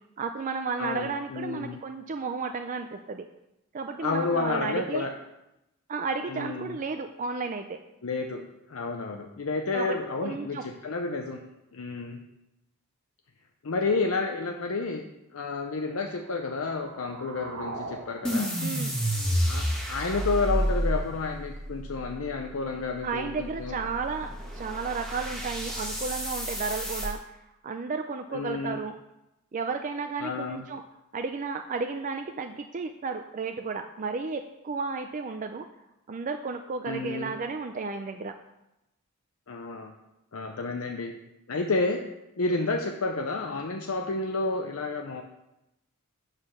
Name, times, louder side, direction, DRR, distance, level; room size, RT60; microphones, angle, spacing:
voice 1, 0.2-3.2 3.7-5.1 5.9-7.8 9.7-10.6 18.6-19.0 23.0-27.3 27.6-28.9 29.5-30.8 31.1-35.7 36.1-38.3, right 4 dB, 35° right, 6 dB, 0.4 m, -33 dB
voice 2, 0.8-1.8 4.0-5.1 6.3-6.8 8.0-8.4 8.7-11.4 11.7-12.2 13.6-15.0 15.3-18.5 19.4-23.8 28.3-28.8 30.2-30.6 36.8-37.3 39.5-39.9 40.3-41.1 41.5-42.0 42.4-45.2, left 3 dB, 65° left, 4 dB, 0.6 m, -30 dB
sound 1, 16.0-20.0, right 2 dB, 60° right, 1.2 m, -43 dB
sound 2, 18.2-27.1, equal, 5° left, 1.4 m, -31 dB
7.4 x 6.5 x 6.3 m, 0.91 s
head